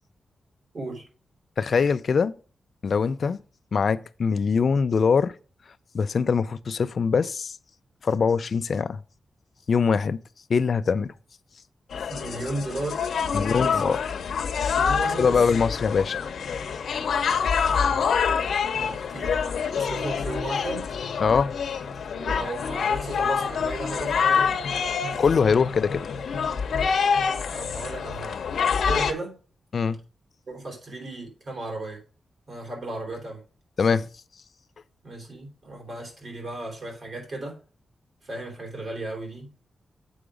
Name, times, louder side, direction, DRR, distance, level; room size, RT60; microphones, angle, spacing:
voice 1, 0.7-1.0 12.1-14.0 14.6-15.4 17.7-18.0 18.7-19.5 19.7-20.9 22.1-24.6 27.5-28.4 28.8-29.4 30.5-32.0 32.5-33.4 35.0-37.6 38.2-39.5, right 2 dB, 50° right, 3.5 m, -35 dB
voice 2, 1.6-2.3 2.8-3.4 3.7-5.3 5.9-7.6 8.0-9.0 9.7-10.2 10.5-11.1 13.3-14.0 15.2-16.2 21.2-21.5 25.2-26.1 29.7-30.0 33.8-34.1, left 5 dB, 50° left, 0.5 m, -22 dB
sound 1, 11.9-29.1, left 6 dB, 80° left, 0.9 m, -26 dB
7.8 x 5.0 x 4.9 m
wide cardioid pair, 130°, 0 cm